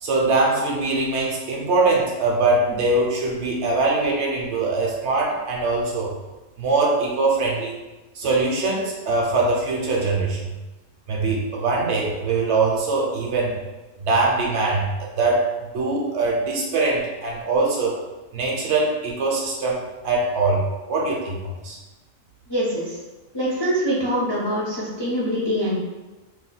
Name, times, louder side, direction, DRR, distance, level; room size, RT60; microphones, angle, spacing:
voice 1, 0.0-6.1 6.6-7.7 8.1-10.4 11.1-13.6 14.0-15.5 15.7-18.0 18.3-19.8 20.0-21.8, right 3 dB, 65° right, -2 dB, 0.9 m, -22 dB
voice 2, 22.5-23.0 23.3-25.8, equal, 35° left, -7 dB, 0.4 m, -24 dB
2.7 x 2.2 x 3.9 m, 1.1 s
omnidirectional pair, 1.4 m